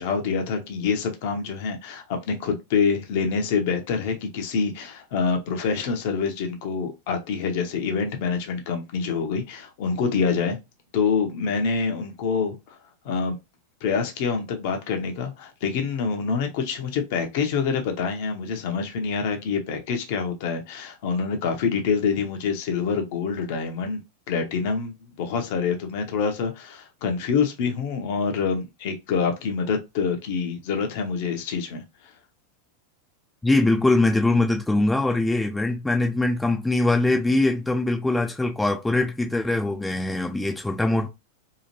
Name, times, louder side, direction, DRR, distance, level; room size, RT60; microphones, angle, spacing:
voice 1, 0.0-10.6 10.9-12.6 13.0-13.4 13.8-24.0 24.3-31.8, left 5 dB, 50° left, 0.6 m, -26 dB
voice 2, 33.4-41.1, left 2 dB, 5° left, 0.4 m, -22 dB
2.8 x 2.4 x 2.8 m
figure-of-eight pair, 90°, 0 cm